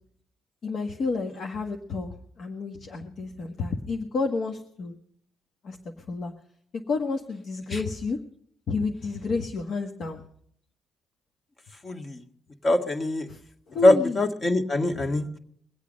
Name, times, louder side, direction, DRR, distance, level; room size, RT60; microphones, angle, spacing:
voice 1, 0.6-5.0 5.6-6.3 6.7-8.2 8.7-10.2 13.3-13.4 13.7-14.2, left 4 dB, 60° left, 3 dB, 1.6 m, -30 dB
voice 2, 11.8-12.2 12.6-13.3 13.8-15.4, left 1 dB, 35° left, 5 dB, 2.0 m, -23 dB
23.0 x 8.4 x 5.3 m, 0.66 s
cardioid pair, 90°, 0 cm